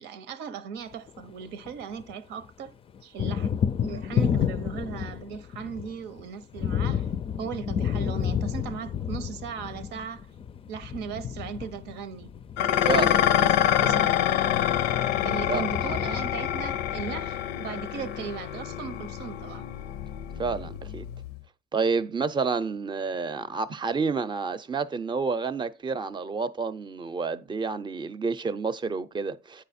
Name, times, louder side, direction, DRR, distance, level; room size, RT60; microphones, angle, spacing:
voice 1, 0.0-2.8 3.0-7.1 7.4-10.3 10.7-12.3 13.1-14.5 15.2-19.7, right 6 dB, 85° right, 0.8 m, -38 dB
Thunder, 0.9-2.1 2.4-17.7, left 8 dB, 35° left, 0.4 m, -31 dB
Dishes pots and pans, 12.6-21.4, left 11 dB, 85° left, 0.6 m, -26 dB
voice 2, 12.8-13.2 15.5-15.6 20.4-21.0 21.7-29.6, right 4 dB, 25° right, 0.6 m, -29 dB
8.7 x 4.9 x 4.2 m
cardioid pair, 110°, 17 cm